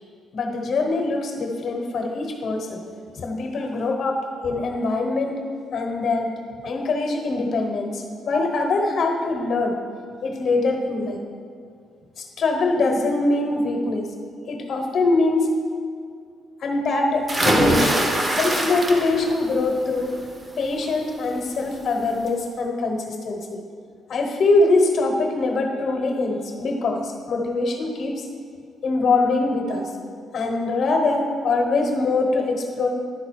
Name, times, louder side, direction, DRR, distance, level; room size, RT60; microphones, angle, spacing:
voice 1, 0.3-2.8 3.1-5.4 5.7-6.3 6.6-9.8 10.2-11.2 12.2-14.1 14.5-15.5 16.6-18.1 18.4-20.1 20.6-23.6 24.1-28.3 28.8-29.9 30.3-32.9, left 3 dB, 60° left, 3 dB, 1.1 m, -23 dB
sound 1, 17.3-19.4 19.8-20.2 21.6-21.7 22.1-22.2, right 1 dB, 25° right, 1.0 m, -22 dB
10.5 x 4.0 x 4.7 m, 2.3 s
cardioid pair, 90°, 0 cm